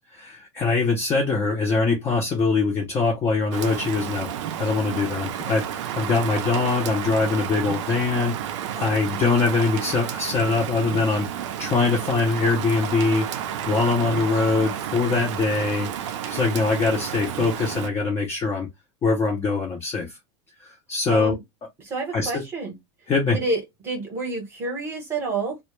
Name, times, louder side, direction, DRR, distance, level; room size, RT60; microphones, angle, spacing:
voice 1, 0.0-4.3 4.6-13.3 13.7-18.7 19.0-20.1 20.6-21.4 22.1-22.4 23.1-23.4, left 4 dB, 15° left, 0.4 m, -23 dB
Rain, 3.5-17.9, right 10 dB, 90° right, 0.5 m, -31 dB
voice 2, 21.1-21.4 21.8-22.7 23.3-25.6, right 3 dB, 15° right, 0.8 m, -29 dB
2.1 x 2.0 x 2.9 m
supercardioid pair, 175°, 15 cm